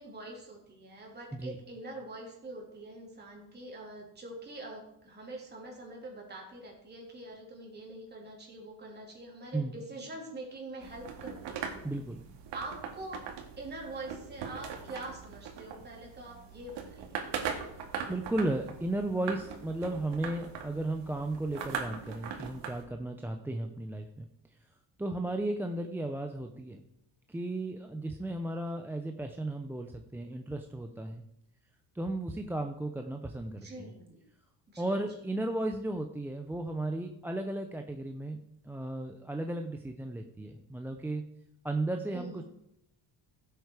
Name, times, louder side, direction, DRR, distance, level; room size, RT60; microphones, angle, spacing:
voice 1, 0.0-11.7 12.5-13.2 13.6-17.1 33.6-34.2 34.7-35.2 42.1-42.4, right 2 dB, 25° right, -2 dB, 3.4 m, -44 dB
sound 1, 10.8-22.8, right 7 dB, 70° right, 2.3 m, -41 dB
voice 2, 11.8-12.3 18.1-24.3 25.0-26.8 27.3-31.2 31.9-33.9 34.8-38.4 38.6-41.2 41.6-42.4, right 2 dB, 5° right, 4 dB, 0.5 m, -35 dB
15.5 x 8.2 x 4.8 m, 0.79 s
cardioid pair, 170°, 43 cm